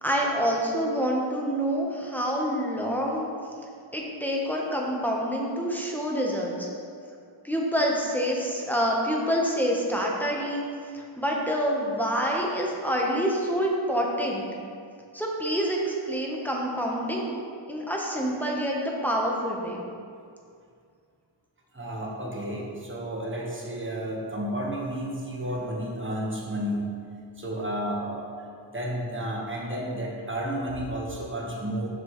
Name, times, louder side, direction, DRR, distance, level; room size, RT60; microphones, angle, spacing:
voice 1, 0.0-3.3 3.9-6.7 7.4-10.7 10.9-14.5 15.1-17.4 17.7-19.8, equal, 5° left, -2 dB, 1.0 m, -27 dB
voice 2, 21.7-26.9 27.4-28.2 28.7-31.9, right 1 dB, 25° right, -2 dB, 1.2 m, -32 dB
7.6 x 6.0 x 3.1 m, 2.3 s
wide cardioid pair, 95°, 49 cm